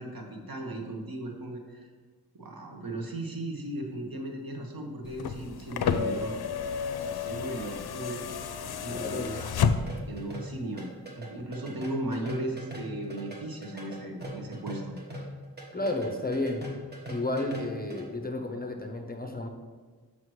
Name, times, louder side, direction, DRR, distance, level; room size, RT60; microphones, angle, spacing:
voice 1, 0.0-1.9 2.3-6.4 7.0-8.3 8.6-9.5 10.1-10.9 11.2-14.9, right 1 dB, 65° right, 2 dB, 1.1 m, -36 dB
sound 1, 5.1-10.2 11.4-11.5, left 6 dB, 75° left, 0.5 m, -31 dB
voice 2, 8.9-9.3 15.7-16.7 17.1-19.5, left 2 dB, 25° left, 3 dB, 0.7 m, -32 dB
sound 2, 9.7-18.0, equal, 25° right, 1.3 m, -40 dB
7.5 x 5.9 x 3.1 m, 1.4 s
wide cardioid pair, 95°, 38 cm